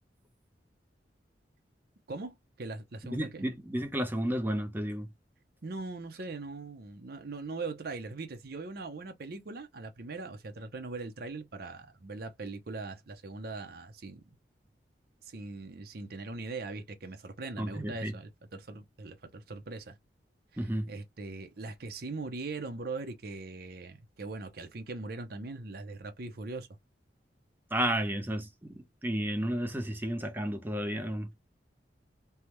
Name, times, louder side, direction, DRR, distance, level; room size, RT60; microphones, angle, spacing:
voice 1, 2.1-3.4 5.6-14.2 15.2-20.0 20.5-26.7, right 3 dB, 60° right, 0.7 m, -41 dB
voice 2, 3.1-5.1 17.6-18.1 20.6-20.9 27.7-31.3, right 1 dB, 10° right, 0.7 m, -32 dB
3.4 x 2.2 x 2.9 m
head